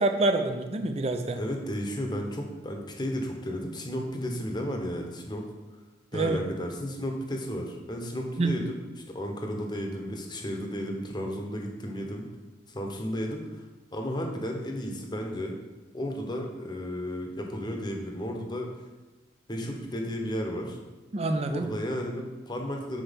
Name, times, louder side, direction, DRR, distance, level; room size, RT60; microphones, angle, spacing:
voice 1, 0.0-1.4 6.1-6.4 8.4-8.5 21.1-21.7, right 2 dB, 35° right, 7 dB, 0.5 m, -26 dB
voice 2, 1.3-5.4 6.1-8.8 9.1-12.3 12.7-13.6 13.9-15.6 15.9-18.7 19.5-20.8 21.5-23.0, equal, 25° left, 2 dB, 1.0 m, -33 dB
6.3 x 4.5 x 5.2 m, 1.2 s
head